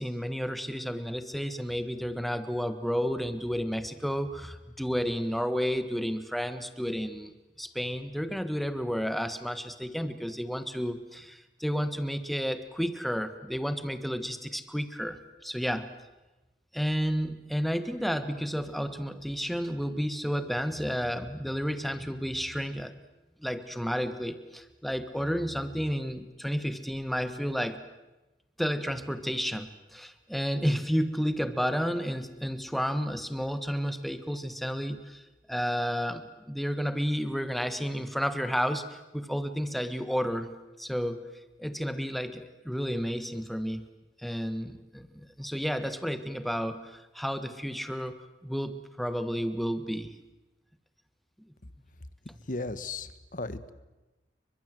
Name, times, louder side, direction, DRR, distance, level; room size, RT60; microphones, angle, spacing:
voice 1, 0.0-15.9 16.7-22.9 23.4-27.8 28.6-35.2 35.5-40.5 40.8-41.2 41.6-43.8 44.2-50.1 51.4-51.5, equal, ahead, 10 dB, 1.4 m, -31 dB
voice 2, 52.5-53.7, left 2 dB, 45° left, 14 dB, 1.4 m, -35 dB
30.0 x 24.0 x 7.8 m, 1.1 s
head